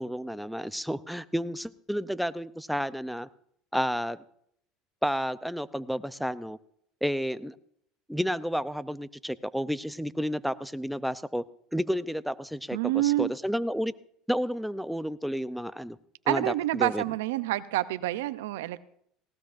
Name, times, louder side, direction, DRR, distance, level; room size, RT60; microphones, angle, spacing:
voice 1, 0.0-3.3 3.7-4.2 5.0-6.6 7.0-7.6 8.1-11.4 11.7-12.8 13.0-13.9 14.3-16.0 16.3-17.0, equal, ahead, 14 dB, 0.6 m, -31 dB
voice 2, 12.7-13.3 16.3-18.8, right 16 dB, 85° right, 15 dB, 0.6 m, -28 dB
19.0 x 17.0 x 2.6 m, 0.68 s
supercardioid pair, 100°, 0 cm